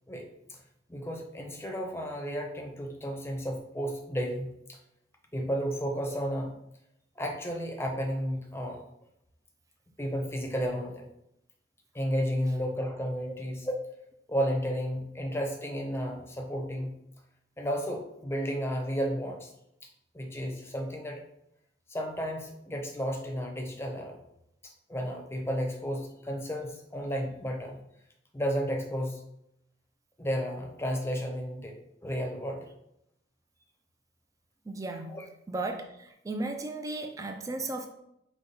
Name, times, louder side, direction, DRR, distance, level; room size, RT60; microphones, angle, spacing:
voice 1, 0.1-0.6 0.9-4.8 5.3-6.6 7.2-8.8 10.0-11.0 11.9-13.8 14.3-16.9 17.6-19.5 19.8-19.9 20.1-21.2 21.9-24.1 24.6-27.8 28.3-29.2 30.2-31.8 32.0-32.6 35.1-35.2, equal, 15° left, 2 dB, 0.6 m, -32 dB
voice 2, 34.7-35.2 35.5-37.9, right 2 dB, 20° right, 5 dB, 0.3 m, -35 dB
5.1 x 2.3 x 4.1 m, 0.80 s
head